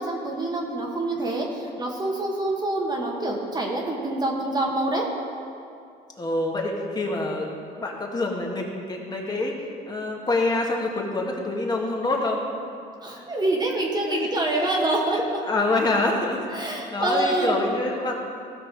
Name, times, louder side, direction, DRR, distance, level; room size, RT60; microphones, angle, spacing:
voice 1, 0.0-5.1 13.0-15.4 16.5-17.6, right 2 dB, 25° right, -1 dB, 1.4 m, -26 dB
voice 2, 6.2-7.5 7.8-9.5 9.9-12.4 13.1-13.3 14.0-14.3 14.6-14.7 15.1-18.2, left 2 dB, 25° left, 0 dB, 1.8 m, -26 dB
16.0 x 6.1 x 4.8 m, 2.4 s
cardioid pair, 110°, 17 cm